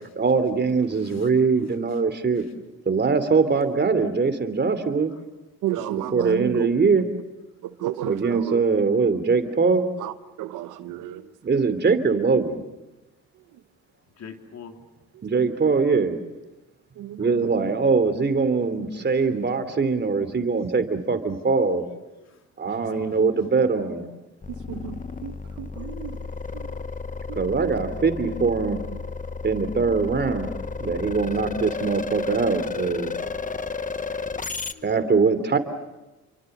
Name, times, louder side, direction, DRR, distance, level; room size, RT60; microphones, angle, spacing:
voice 1, 0.1-2.4 2.8-5.1 5.9-7.1 8.1-9.9 11.4-12.6 15.2-16.2 17.2-21.8 22.6-24.1 27.4-28.8 29.4-30.5 30.8-33.2 34.8-35.6, right 4 dB, 35° right, 10 dB, 3.1 m, -22 dB
voice 2, 5.6-6.7 7.6-8.6 10.0-10.1 10.4-11.2 17.0-17.3 24.7-26.2 26.5-26.7 27.3-27.7 29.9-30.0, right 12 dB, 85° right, 11 dB, 1.0 m, -32 dB
voice 3, 10.8-11.2 14.2-14.7 22.2-23.2 25.7-26.1 34.2-35.0, left 6 dB, 60° left, 4 dB, 3.4 m, -46 dB
sound 1, 24.4-34.7, left 4 dB, 25° left, 1.1 m, -32 dB
29.5 x 24.0 x 6.8 m, 1.1 s
cardioid pair, 90°, 30 cm